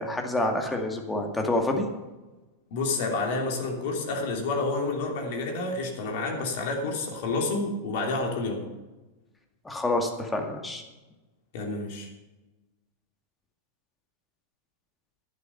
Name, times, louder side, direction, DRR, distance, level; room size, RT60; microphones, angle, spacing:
voice 1, 0.0-1.9 9.7-10.8, left 2 dB, 10° left, 3 dB, 2.1 m, -27 dB
voice 2, 2.7-8.7 11.5-12.1, left 3 dB, 50° left, 1 dB, 3.0 m, -29 dB
11.0 x 11.0 x 5.7 m, 1.1 s
figure-of-eight pair, 90°, 0 cm